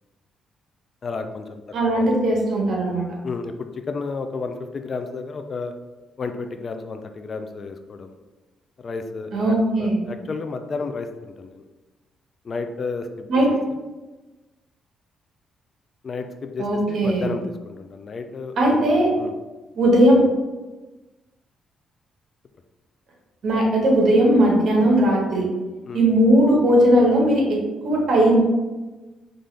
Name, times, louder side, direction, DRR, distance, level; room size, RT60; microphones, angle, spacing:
voice 1, 1.0-1.6 2.0-2.1 3.2-5.7 6.2-8.1 8.8-11.6 12.4-13.6 16.0-19.3 25.9-26.0, left 4 dB, 45° left, 7 dB, 0.4 m, -32 dB
voice 2, 1.7-3.0 9.3-10.0 13.3-13.5 16.6-17.2 18.6-19.1 19.7-20.2 23.4-25.5 25.9-27.6 27.8-28.4, right 1 dB, 60° right, -2 dB, 1.3 m, -18 dB
5.3 x 2.5 x 3.3 m, 1.2 s
cardioid pair, 90°, 0 cm